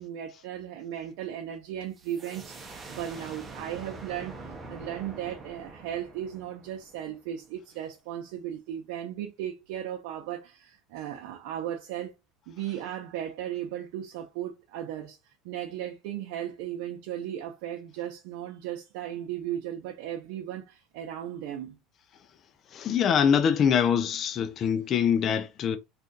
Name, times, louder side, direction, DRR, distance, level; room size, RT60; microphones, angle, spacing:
voice 1, 0.0-12.1 12.5-21.8, right 11 dB, 75° right, 0.6 m, -36 dB
sound 1, 2.0-7.5, right 3 dB, 20° right, 0.7 m, -45 dB
voice 2, 22.7-25.8, left 8 dB, 40° left, 0.4 m, -24 dB
2.6 x 2.4 x 3.7 m
supercardioid pair, 125°, 0 cm